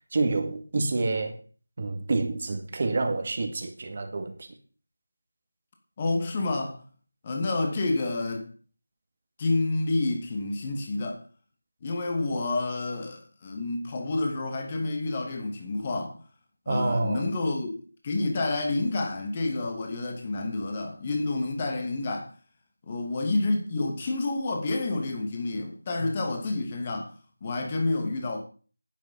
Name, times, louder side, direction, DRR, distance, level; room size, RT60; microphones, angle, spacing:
voice 1, 0.1-1.4 1.8-4.5 16.7-17.3, right 3 dB, 40° right, 2.1 m, -28 dB
voice 2, 6.0-6.8 7.2-8.5 9.4-11.2 11.8-16.2 16.7-22.3 22.9-27.1 27.4-28.4, left 2 dB, 25° left, 2.5 m, -29 dB
11.0 x 9.3 x 5.5 m
figure-of-eight pair, 170°, 0 cm